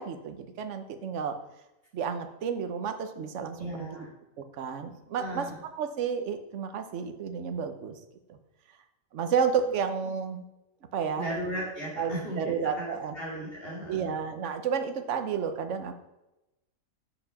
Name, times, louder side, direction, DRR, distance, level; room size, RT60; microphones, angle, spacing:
voice 1, 0.0-1.4 1.9-4.1 4.4-5.5 5.8-7.9 8.3-8.4 9.1-10.4 10.9-11.3 12.0-13.1 13.9-15.9, right 6 dB, 60° right, 7 dB, 1.1 m, -31 dB
voice 2, 3.6-4.1 5.2-5.5 11.2-12.9 13.1-14.0, right 1 dB, 45° left, -6 dB, 3.0 m, -36 dB
7.6 x 6.9 x 5.7 m, 0.95 s
omnidirectional pair, 1.4 m